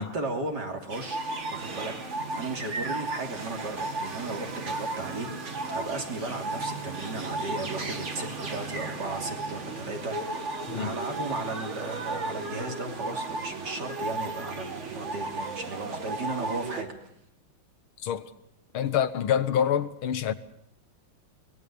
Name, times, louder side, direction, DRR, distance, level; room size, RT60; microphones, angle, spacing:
voice 1, 0.0-10.5 10.7-17.1, right 2 dB, 55° right, 3.6 m, -35 dB
sound 1, 0.9-16.8, right 3 dB, 35° right, 2.1 m, -35 dB
voice 2, 18.7-20.3, left 9 dB, 85° left, 2.0 m, -26 dB
24.0 x 20.0 x 6.9 m
omnidirectional pair, 2.3 m